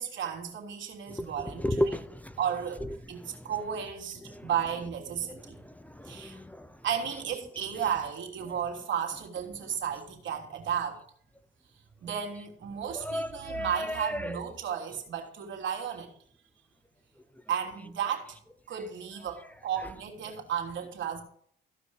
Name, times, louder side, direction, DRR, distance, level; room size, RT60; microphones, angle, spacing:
voice 1, 0.0-1.8 2.4-5.5 6.1-6.4 6.8-11.0 12.0-16.1 17.5-18.3 18.7-21.2, right 8 dB, 70° right, 3.3 m, -33 dB
voice 2, 1.1-3.6 4.2-4.8 5.2-6.7 6.9-7.3 7.7-7.9 8.4-8.6 12.9-14.5 18.7-18.9 19.4-19.5 19.8-19.9, left 1 dB, 5° left, 0.8 m, -36 dB
15.0 x 5.2 x 6.6 m
cardioid pair, 90°, 20 cm